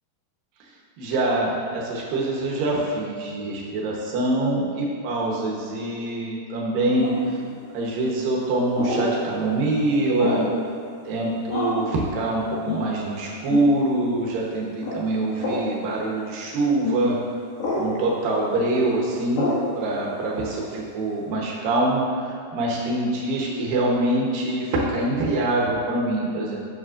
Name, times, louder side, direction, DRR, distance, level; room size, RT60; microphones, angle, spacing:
voice 1, 1.0-7.4 7.7-10.5 11.1-17.2 17.8-26.6, right 2 dB, 70° right, -3 dB, 2.4 m, -24 dB
sound 1, 7.0-7.3 8.7-9.1 10.2-10.5 11.5-11.9 12.6-12.9 13.5-13.7 14.8-15.0 15.4-15.6 16.8-17.0 17.6-17.9 19.3-19.6, left 2 dB, 65° left, 3.6 m, -26 dB
10.0 x 6.6 x 2.5 m, 2.5 s
omnidirectional pair, 4.8 m